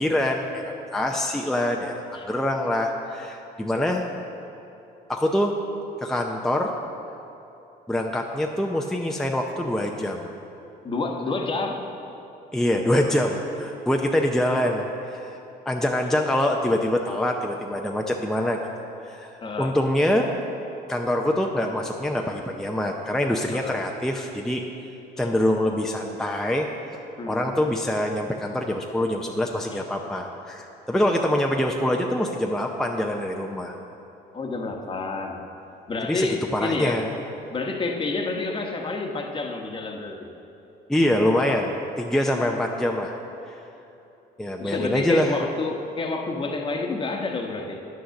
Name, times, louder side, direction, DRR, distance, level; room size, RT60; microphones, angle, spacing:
voice 1, 0.0-4.0 5.1-5.5 6.0-6.7 7.9-10.3 12.5-15.4 15.7-18.6 19.0-20.3 20.9-24.6 25.2-26.7 27.3-33.7 36.1-36.3 36.5-37.1 40.9-43.2 43.5-43.6 44.4-45.4, left 1 dB, 5° left, 1 dB, 0.6 m, -25 dB
voice 2, 10.8-11.8 19.4-19.8 23.5-23.8 25.2-25.3 27.2-27.5 34.3-35.4 35.9-37.0 37.5-40.3 44.6-47.8, left 3 dB, 30° left, 3 dB, 1.1 m, -29 dB
9.5 x 6.4 x 6.9 m, 3.0 s
cardioid pair, 110°, 17 cm